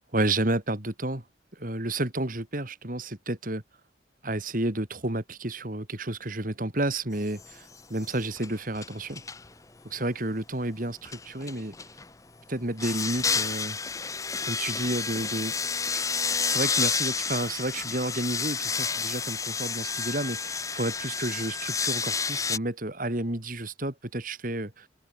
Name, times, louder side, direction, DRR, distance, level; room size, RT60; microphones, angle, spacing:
voice 1, 0.1-1.2 1.5-3.6 4.2-9.2 9.8-11.7 12.5-13.8 14.4-16.0 16.4-24.9, right 1 dB, 45° right, 2.6 m, -31 dB
sound 1, 7.4-7.7 8.0-9.5 11.1-12.0 12.8-22.6, left 5 dB, 15° left, 0.7 m, -30 dB
head